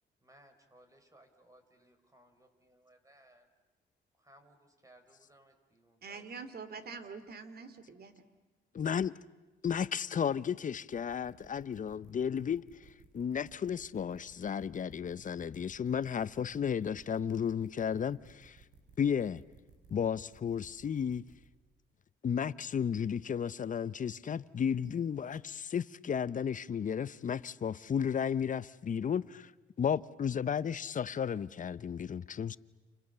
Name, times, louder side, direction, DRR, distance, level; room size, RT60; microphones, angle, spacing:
voice 1, 0.2-3.5 4.2-6.2, right 1 dB, 15° right, 4.7 m, -62 dB
voice 2, 6.0-8.2, right 5 dB, 50° right, 3.1 m, -45 dB
voice 3, 8.7-9.2 9.6-12.6 13.1-18.6 19.0-19.4 19.9-21.2 22.2-29.5 29.8-32.6, left 7 dB, 40° left, 0.8 m, -33 dB
sound 1, 10.9-21.5, right 5 dB, 70° right, 7.5 m, -59 dB
29.5 x 28.5 x 6.9 m
cardioid pair, 90°, 20 cm